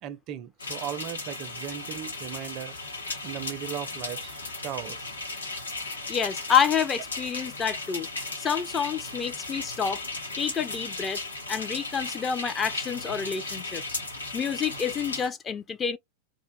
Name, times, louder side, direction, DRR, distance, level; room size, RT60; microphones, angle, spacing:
voice 1, 0.0-2.7 3.2-5.1, right 10 dB, 40° right, 0.4 m, -37 dB
sound 1, 0.6-15.3, left 3 dB, 75° left, 0.7 m, -36 dB
voice 2, 6.1-8.1 8.4-10.0 10.4-11.2 11.5-14.0 14.3-16.0, left 7 dB, 20° left, 0.4 m, -28 dB
2.5 x 2.1 x 3.3 m
figure-of-eight pair, 90°, 0 cm